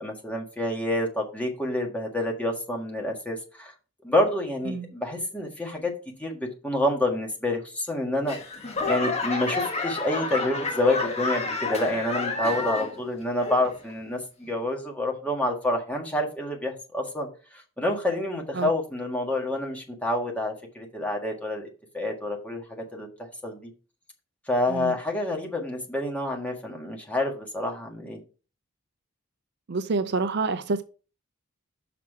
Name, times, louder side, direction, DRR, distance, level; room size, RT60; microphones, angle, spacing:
voice 1, 0.0-3.7 4.0-5.9 6.2-8.4 8.8-21.7 21.9-23.7 24.5-28.2, left 1 dB, 5° left, 1.7 m, -28 dB
Laughter / Clapping / Crowd, 8.3-13.0 13.4-13.9 14.5-14.6, left 3 dB, 30° left, 1.5 m, -29 dB
voice 2, 29.7-30.8, right 4 dB, 50° right, 0.5 m, -27 dB
6.0 x 5.9 x 4.7 m
head